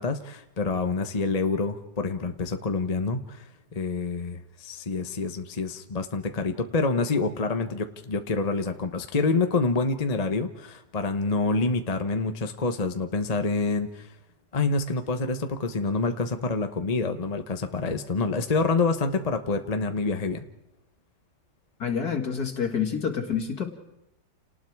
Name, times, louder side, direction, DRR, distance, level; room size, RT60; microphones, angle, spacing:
voice 1, 0.0-3.4 3.7-14.1 14.5-20.4, left 3 dB, 25° left, 7 dB, 0.9 m, -27 dB
voice 2, 21.8-23.7, left 7 dB, 60° left, 4 dB, 2.4 m, -28 dB
29.5 x 19.0 x 4.7 m, 0.89 s
omnidirectional pair, 1.9 m